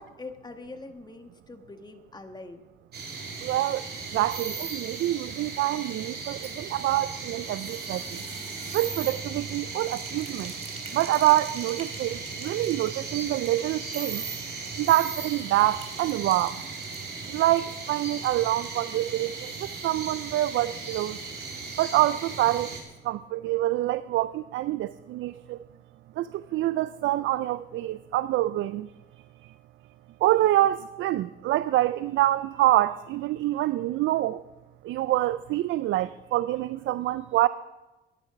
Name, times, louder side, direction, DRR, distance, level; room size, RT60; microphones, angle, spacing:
voice 1, 0.0-2.6, left 3 dB, 20° left, 1.6 m, -43 dB
sound 1, 2.9-22.8, right 4 dB, 55° right, 3.2 m, -37 dB
voice 2, 3.4-8.2 8.7-10.5 10.9-14.2 14.8-16.6 17.3-21.2 21.8-22.8 23.0-25.6 26.2-28.9 30.2-34.4 34.8-37.5, right 15 dB, 75° right, 0.4 m, -26 dB
sound 2, 6.2-19.2 19.4-19.5 19.8-19.9, right 3 dB, 30° right, 3.3 m, -49 dB
14.0 x 11.0 x 5.8 m
cardioid pair, 90°, 20 cm